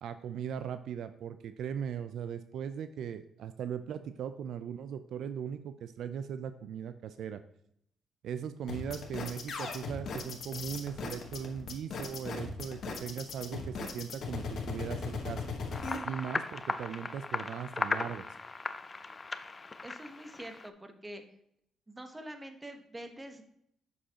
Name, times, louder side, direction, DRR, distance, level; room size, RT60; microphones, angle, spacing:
voice 1, 0.0-7.4 8.2-15.4 16.0-18.3, right 8 dB, 75° right, 11 dB, 0.4 m, -39 dB
sound 1, 8.7-16.0, left 4 dB, 60° left, 1.2 m, -38 dB
sound 2, 15.7-20.7, left 3 dB, 30° left, 0.5 m, -37 dB
voice 2, 19.8-21.2 21.9-23.4, right 1 dB, 15° right, 6 dB, 1.0 m, -45 dB
7.5 x 6.7 x 2.9 m, 0.73 s
cardioid pair, 90°, 0 cm